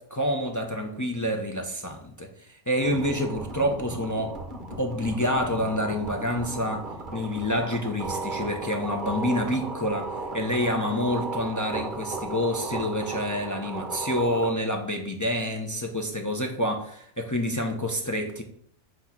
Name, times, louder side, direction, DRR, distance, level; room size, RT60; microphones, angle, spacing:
voice 1, 0.0-4.4 4.8-6.9 7.1-18.4, left 1 dB, 25° left, 3 dB, 0.4 m, -28 dB
sound 1, 2.8-14.5, right 3 dB, 40° right, 1.0 m, -35 dB
8.2 x 3.0 x 5.9 m, 0.66 s
omnidirectional pair, 1.5 m